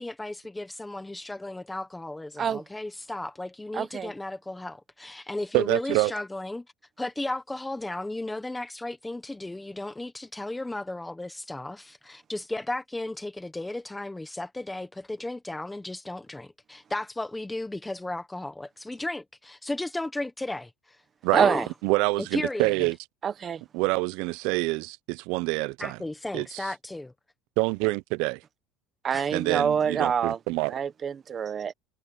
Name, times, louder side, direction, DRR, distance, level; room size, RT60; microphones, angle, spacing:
voice 1, 0.0-6.6 7.0-20.7 21.3-21.7 22.3-22.9 25.8-27.1 29.1-29.3, left 2 dB, 5° left, 1.0 m, -34 dB
voice 2, 3.7-4.1 21.4-21.7 23.2-23.6 29.0-30.4 30.7-31.7, right 7 dB, 25° right, 1.0 m, -26 dB
voice 3, 5.5-6.1 21.2-21.5 21.8-23.0 23.7-26.0 26.3-26.7 27.6-28.4 29.3-30.7, right 24 dB, 60° right, 0.4 m, -26 dB
cardioid pair, 175°, 0 cm